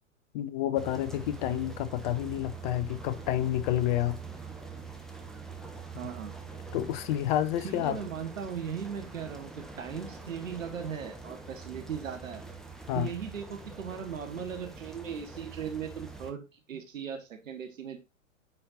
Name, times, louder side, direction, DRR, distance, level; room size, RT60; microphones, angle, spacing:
voice 1, 0.3-4.2 6.7-8.0 12.9-13.1, left 12 dB, 35° left, 0.7 m, -29 dB
sound 1, 0.7-16.3, right 5 dB, ahead, 0.9 m, -44 dB
voice 2, 6.0-6.3 7.6-12.4 12.9-18.0, right 7 dB, 70° right, 1.4 m, -38 dB
9.5 x 4.5 x 2.5 m
figure-of-eight pair, 110°, 40 cm